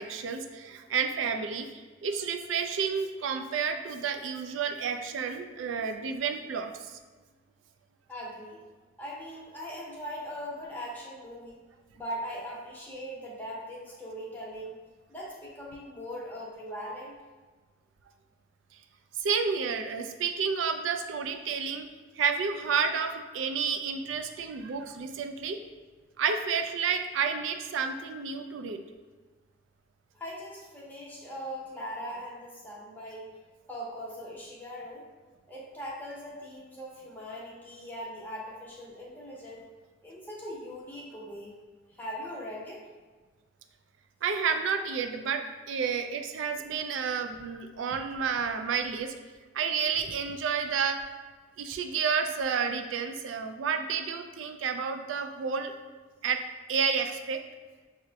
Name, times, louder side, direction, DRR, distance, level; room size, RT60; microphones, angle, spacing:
voice 1, 0.0-7.0 19.2-21.9 22.2-25.6 26.2-28.8 44.2-49.1 49.5-51.0 51.6-55.7 56.2-56.4 56.7-57.4, right 6 dB, 75° right, 7 dB, 0.3 m, -30 dB
voice 2, 8.1-8.6 9.0-11.6 11.9-14.8 15.1-17.1 30.1-33.3 33.7-35.1 35.5-39.7 40.0-41.5 41.9-42.9, equal, 10° left, -5 dB, 0.7 m, -40 dB
6.0 x 2.1 x 2.7 m, 1.4 s
head